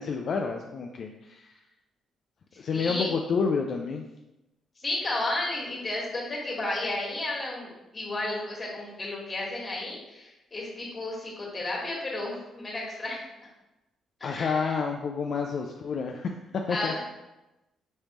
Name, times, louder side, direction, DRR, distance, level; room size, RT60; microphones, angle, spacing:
voice 1, 0.0-1.5 2.6-4.0 14.2-16.9, left 5 dB, 55° left, 2 dB, 0.3 m, -29 dB
voice 2, 2.7-3.1 4.8-13.2 14.2-14.8 16.7-17.0, left 2 dB, 30° left, -3 dB, 1.6 m, -33 dB
5.3 x 3.3 x 3.0 m, 1.0 s
cardioid pair, 90°, 0 cm